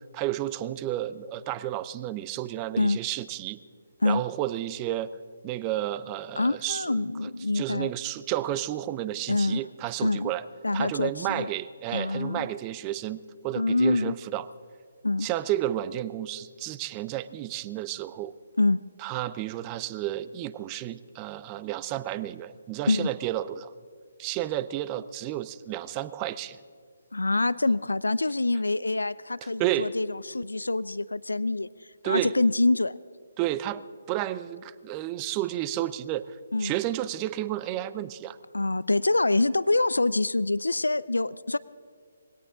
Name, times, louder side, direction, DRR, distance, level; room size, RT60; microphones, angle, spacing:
voice 1, 0.0-3.6 4.0-5.1 5.4-10.5 10.7-14.5 15.2-18.3 19.0-23.7 24.2-26.6 29.6-29.9 32.0-32.3 33.4-38.4, right 14 dB, 25° right, 16 dB, 0.5 m, -31 dB
voice 2, 6.4-7.9 9.3-9.6 10.0-10.3 10.6-11.5 11.9-12.5 13.6-14.1 15.0-15.3 18.6-18.8 22.9-23.1 27.1-33.0 36.5-36.8 38.5-41.6, left 2 dB, 85° left, 19 dB, 0.3 m, -25 dB
20.5 x 17.0 x 3.8 m, 2.1 s
figure-of-eight pair, 145°, 0 cm